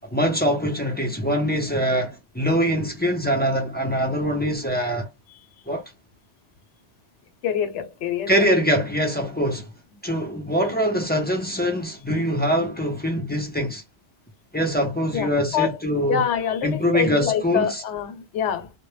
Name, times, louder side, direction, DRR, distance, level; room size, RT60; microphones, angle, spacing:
voice 1, 0.1-5.1 5.7-5.8 8.3-9.7 10.0-13.8 14.5-16.2 16.6-17.8, equal, 15° left, 0.4 m, -23 dB
voice 2, 7.4-8.3 15.1-15.8 16.1-18.7, left 8 dB, 85° left, 1.0 m, -26 dB
2.1 x 2.0 x 3.1 m
omnidirectional pair, 1.2 m